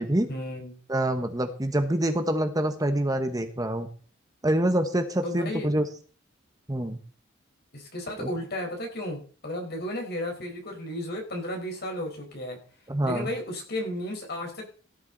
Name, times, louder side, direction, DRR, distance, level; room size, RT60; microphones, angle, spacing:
voice 1, 0.3-0.8 5.2-5.7 7.7-12.6 13.0-14.6, left 1 dB, 50° left, 2 dB, 4.5 m, -34 dB
voice 2, 0.9-3.9 4.4-5.8 6.7-7.0 8.2-8.3 12.9-13.3, right 1 dB, 20° right, 7 dB, 1.1 m, -26 dB
17.0 x 11.0 x 4.0 m, 0.41 s
head